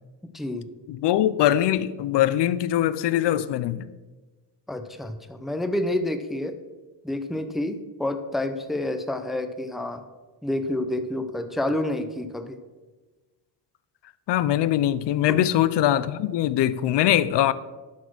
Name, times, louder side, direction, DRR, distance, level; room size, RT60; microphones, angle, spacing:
voice 1, 0.3-0.7 4.7-6.5 7.0-10.0 10.4-12.6 15.3-15.5, left 1 dB, ahead, 0.5 m, -29 dB
voice 2, 0.9-3.9 14.3-17.5, left 12 dB, 75° left, 0.5 m, -22 dB
11.5 x 4.3 x 6.1 m
cardioid pair, 150°, 43 cm